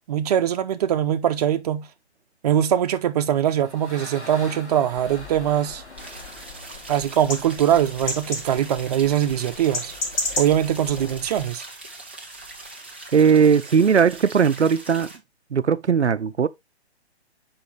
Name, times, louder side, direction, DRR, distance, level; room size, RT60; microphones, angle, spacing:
voice 1, 0.1-1.9 2.4-5.8 6.9-9.9 10.4-11.6, right 10 dB, 35° right, 0.7 m, -22 dB
sound 1, 3.2-7.8, left 2 dB, 80° left, 3.2 m, -43 dB
sound 2, 4.9-11.5, left 2 dB, 55° left, 2.4 m, -34 dB
sound 3, 6.0-15.2, right 2 dB, 10° right, 0.3 m, -41 dB
voice 2, 13.1-15.1 15.5-16.5, right 6 dB, 85° right, 0.6 m, -18 dB
7.1 x 5.1 x 3.2 m
figure-of-eight pair, 130°, 33 cm